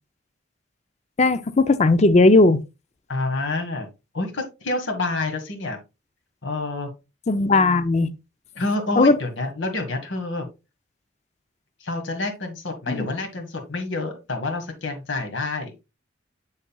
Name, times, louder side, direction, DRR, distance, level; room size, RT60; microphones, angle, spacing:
voice 1, 1.2-2.6 7.3-8.1 9.0-9.2 12.9-13.1, left 2 dB, 35° left, 0.5 m, -17 dB
voice 2, 3.1-3.9 4.1-5.8 6.4-6.9 8.5-10.5 11.8-15.7, left 2 dB, 70° left, 1.6 m, -28 dB
7.3 x 6.4 x 2.3 m
head